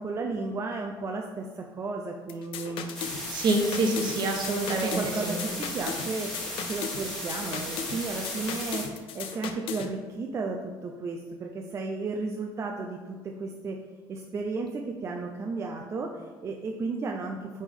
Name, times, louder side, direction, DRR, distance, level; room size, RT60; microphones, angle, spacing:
voice 1, 0.0-3.0 4.8-6.3 6.6-13.8 14.1-17.6, right 3 dB, 30° right, 2 dB, 0.5 m, -34 dB
sound 1, 2.3-9.9, left 7 dB, 65° left, 0.6 m, -37 dB
sound 2, 2.9-8.8, left 1 dB, 5° left, 1.3 m, -36 dB
voice 2, 3.3-5.4, right 2 dB, 50° right, 2 dB, 1.1 m, -27 dB
9.1 x 3.5 x 3.6 m, 1.4 s
cardioid pair, 165°, 10 cm